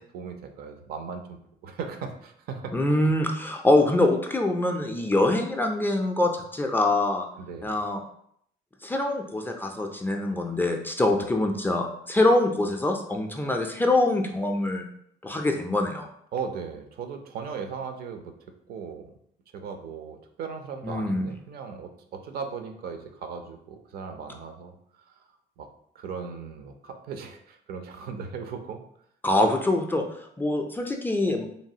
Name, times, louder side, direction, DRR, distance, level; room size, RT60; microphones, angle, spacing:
voice 1, 0.1-2.7 7.4-7.7 11.2-11.4 16.3-18.3 18.7-19.1 19.5-25.3 25.6-28.8, right 6 dB, 65° right, 6 dB, 0.5 m, -37 dB
voice 2, 2.7-7.3 7.6-8.0 8.8-14.8 15.2-16.1 20.8-21.3 29.2-30.0 30.4-31.5, left 2 dB, 10° left, 3 dB, 0.3 m, -24 dB
3.1 x 2.4 x 2.7 m, 0.69 s
cardioid pair, 110°, 17 cm